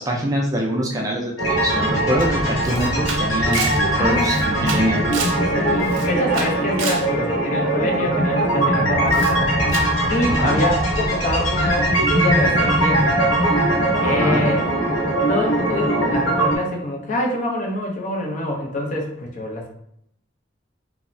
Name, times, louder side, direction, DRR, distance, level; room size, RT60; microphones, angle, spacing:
voice 1, 0.0-5.0 10.2-10.6 14.0-14.4, equal, 20° right, -1 dB, 0.4 m, -24 dB
sound 1, 1.4-16.6, right 1 dB, 80° left, 0.7 m, -20 dB
Camera, 2.2-2.3 2.6-5.4 5.8-7.1 9.1-9.4 9.7-10.0, right 5 dB, 80° right, 0.4 m, -30 dB
voice 2, 3.9-9.5 10.1-13.1 14.0-14.6 15.3-19.7, left 1 dB, 40° left, 1 dB, 0.5 m, -25 dB
3.0 x 2.0 x 2.5 m, 0.73 s
head